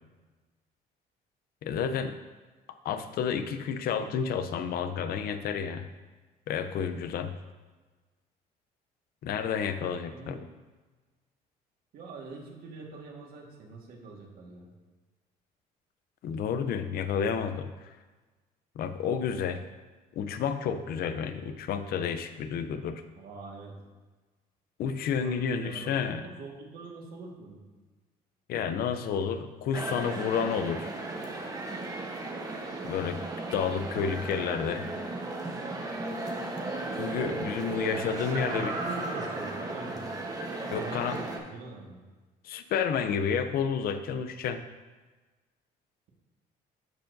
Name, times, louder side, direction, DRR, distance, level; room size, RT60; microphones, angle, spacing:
voice 1, 1.6-2.2 2.7-5.8 6.5-7.3 9.2-10.4 16.2-17.9 18.8-19.6 20.2-23.0 24.8-26.2 28.5-30.9 32.8-33.2 33.5-34.9 36.9-38.8 40.7-41.2 42.4-44.7, left 7 dB, 65° left, 10 dB, 0.6 m, -30 dB
voice 2, 10.1-10.4 11.9-14.7 23.2-23.8 25.2-27.6 38.2-40.1 40.7-42.0, right 3 dB, 65° right, -1 dB, 1.6 m, -43 dB
sound 1, 29.7-41.4, right 2 dB, 20° right, 1.0 m, -35 dB
Laughter, 37.8-40.4 40.9-41.0, right 2 dB, 40° right, 1.3 m, -39 dB
12.5 x 4.5 x 2.6 m, 1.3 s
cardioid pair, 110°, 17 cm